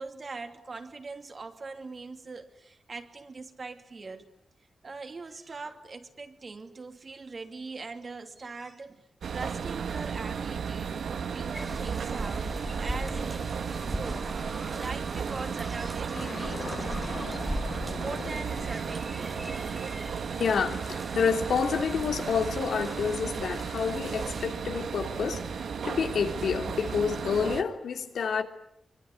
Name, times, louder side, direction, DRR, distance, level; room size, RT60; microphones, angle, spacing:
voice 1, 0.0-4.3 4.8-9.1 9.3-14.3 14.7-16.8 18.0-19.8, right 4 dB, 35° right, 2.6 m, -41 dB
sound 1, 9.2-27.6, right 6 dB, 80° right, 1.6 m, -34 dB
sound 2, 11.5-24.5, right 1 dB, 10° right, 3.5 m, -39 dB
sound 3, 16.2-20.5, left 5 dB, 55° left, 1.3 m, -42 dB
voice 2, 20.4-28.4, left 6 dB, 85° left, 2.9 m, -29 dB
25.5 x 24.5 x 9.6 m
wide cardioid pair, 165°, 0 cm